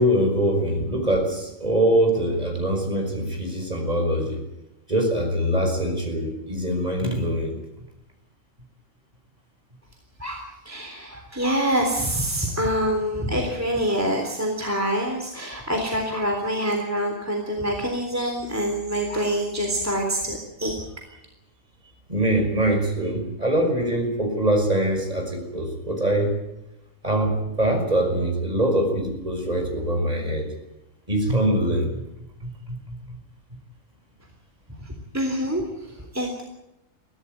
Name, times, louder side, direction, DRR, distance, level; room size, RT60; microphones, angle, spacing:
voice 1, 0.0-4.4 4.9-7.6 22.1-26.3 27.0-30.5 31.1-32.0 32.4-33.0, right 1 dB, 30° right, 3 dB, 5.9 m, -23 dB
voice 2, 10.2-20.8 34.8-36.4, equal, 10° right, 2 dB, 3.5 m, -26 dB
23.5 x 17.0 x 9.2 m, 0.92 s
omnidirectional pair, 1.3 m